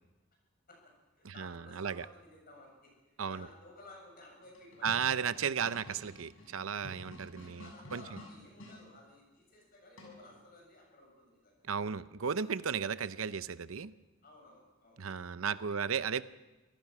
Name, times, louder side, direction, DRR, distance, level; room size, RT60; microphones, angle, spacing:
voice 1, 0.7-4.9 7.0-11.6 12.9-13.1 14.2-15.0 15.9-16.1, left 2 dB, 45° left, 0 dB, 7.6 m, -56 dB
voice 2, 1.2-2.0 3.2-3.5 4.8-8.2 11.7-13.9 15.0-16.2, right 6 dB, 80° right, 15 dB, 0.7 m, -35 dB
sound 1, 4.5-8.8 10.0-10.4, equal, 75° left, 6.7 m, -51 dB
25.0 x 17.0 x 6.1 m, 1.1 s
head